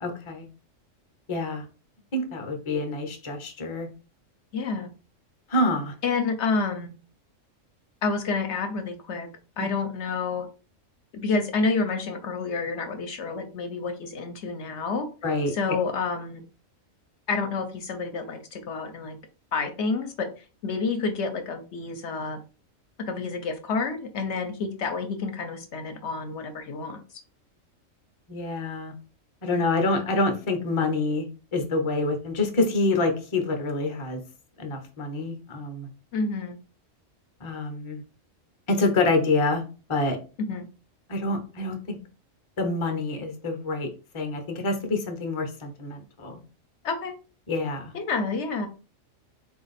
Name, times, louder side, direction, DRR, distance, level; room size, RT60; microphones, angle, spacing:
voice 1, 0.0-0.5 1.3-1.7 2.1-3.9 5.5-5.9 9.6-9.7 15.2-15.8 28.3-28.9 29.4-34.2 34.6-35.9 37.4-38.0 38.7-39.6 39.9-40.2 41.1-42.0 42.6-43.9 44.1-46.4 47.5-47.9, left 2 dB, 30° left, 5 dB, 0.6 m, -27 dB
voice 2, 4.5-4.9 6.0-6.9 8.0-9.3 9.6-10.5 11.1-15.1 15.5-16.4 17.3-19.2 19.5-22.4 23.0-27.0 36.1-36.6 40.5-40.6 46.8-47.1 47.9-48.7, left 4 dB, 65° left, 6 dB, 0.9 m, -29 dB
4.0 x 2.5 x 4.0 m, 0.35 s
omnidirectional pair, 1.4 m